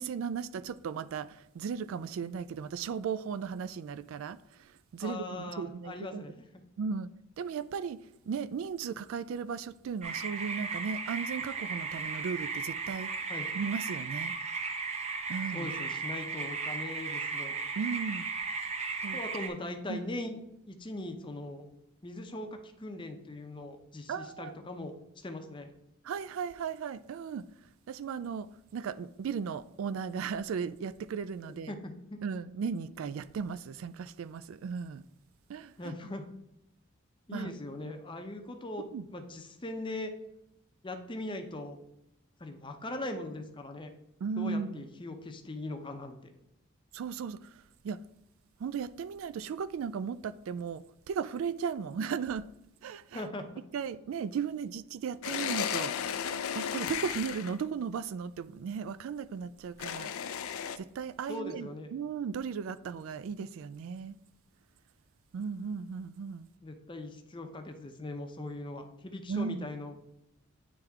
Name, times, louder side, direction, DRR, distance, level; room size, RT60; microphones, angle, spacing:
voice 1, 0.0-6.2 6.8-7.1 7.4-8.0 8.3-13.1 13.5-14.3 15.3-15.7 17.8-18.3 19.0-19.2 19.9-20.0 24.1-24.5 26.0-27.4 27.9-28.5 28.7-31.7 32.2-35.0 35.5-35.9 37.3-37.5 38.9-39.0 44.2-44.8 46.9-47.5 47.8-48.0 48.6-52.5 52.8-53.2 53.7-55.9 56.6-60.1 60.8-64.2 65.3-66.5 69.3-69.7, right 6 dB, 65° right, 0.3 m, -36 dB
voice 2, 5.0-6.5 13.3-13.5 15.5-17.6 19.1-20.4 20.7-21.7 22.0-25.7 31.4-32.2 35.8-36.3 37.3-38.9 39.1-40.1 40.8-41.8 42.4-43.9 44.4-46.3 53.1-53.4 61.3-61.9 66.6-69.9, left 2 dB, 25° left, 0.6 m, -40 dB
sound 1, 10.0-19.5, right 4 dB, 30° right, 0.7 m, -36 dB
sound 2, 55.2-57.6 59.8-60.8, left 8 dB, 70° left, 0.4 m, -34 dB
9.5 x 3.4 x 3.5 m
head